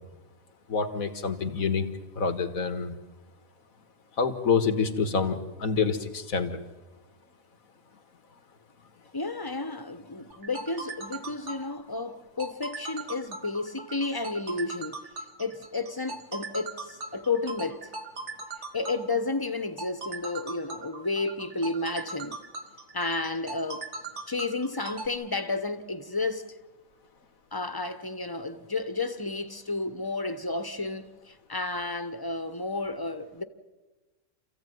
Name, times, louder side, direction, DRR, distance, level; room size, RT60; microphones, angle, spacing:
voice 1, 0.7-1.9 2.2-3.0 4.2-6.6, left 5 dB, 90° left, 2.0 m, -27 dB
voice 2, 9.1-15.0 15.4-17.8 18.7-22.4 22.9-23.8 24.3-26.5 27.5-33.4, left 3 dB, 20° left, 0.9 m, -32 dB
sound 1, 10.3-25.1, right 3 dB, 60° right, 2.0 m, -39 dB
27.5 x 15.5 x 9.3 m
omnidirectional pair, 1.4 m